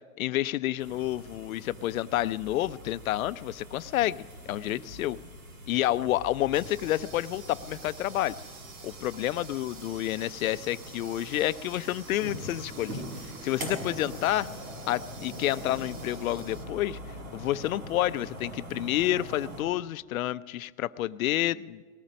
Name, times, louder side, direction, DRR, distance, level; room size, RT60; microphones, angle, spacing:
voice 1, 0.2-5.2 5.7-8.4 8.8-13.0 13.4-14.5 14.9-17.0 17.3-21.8, left 14 dB, 75° left, 16 dB, 0.6 m, -29 dB
sound 1, 0.8-19.6, equal, 80° right, 6.6 m, -43 dB
sound 2, 6.5-16.7, right 4 dB, 15° right, 0.4 m, -49 dB
19.5 x 14.5 x 5.2 m, 1.5 s
hypercardioid pair, 140°, 42 cm